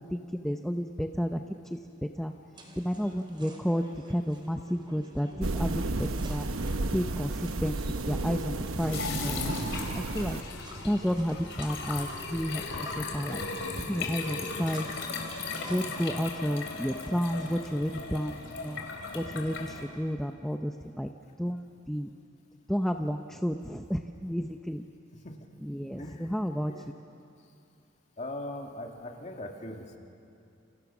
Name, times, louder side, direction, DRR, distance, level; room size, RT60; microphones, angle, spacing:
voice 1, 0.1-1.4 1.7-1.8 2.2-2.3 2.8-6.4 6.9-7.8 8.1-10.4 10.8-13.4 13.9-14.9 15.7-21.1 21.4-21.6 21.9-22.1 22.7-24.8 25.6-26.7, equal, ahead, 4 dB, 0.6 m, -31 dB
sound 1, 2.5-16.0, right 1 dB, 25° right, 3.2 m, -50 dB
sound 2, 5.4-10.4, right 2 dB, 90° right, 1.0 m, -32 dB
sound 3, 8.9-19.9, left 3 dB, 70° left, 3.6 m, -37 dB
voice 2, 26.0-26.3 26.7-26.8 28.2-30.0, left 1 dB, 35° left, 1 dB, 2.5 m, -40 dB
30.0 x 29.0 x 6.1 m, 2.6 s
head